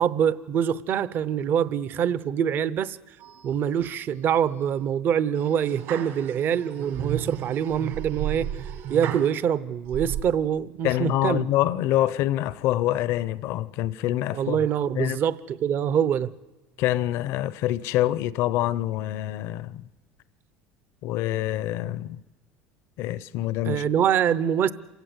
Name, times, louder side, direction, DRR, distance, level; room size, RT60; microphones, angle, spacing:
voice 1, 0.0-3.0 3.4-8.5 8.9-11.5 14.3-16.3 23.6-24.7, right 8 dB, 45° right, 0.7 m, -24 dB
sound 1, 3.2-3.9 4.3-4.8 5.4-9.3 9.9-10.2, right 11 dB, 65° right, 2.3 m, -33 dB
voice 2, 10.8-14.6 15.0-15.2 16.8-19.8 21.0-22.2 23.0-23.8, left 14 dB, 60° left, 0.7 m, -26 dB
27.0 x 16.5 x 8.0 m
cardioid pair, 135°, 5 cm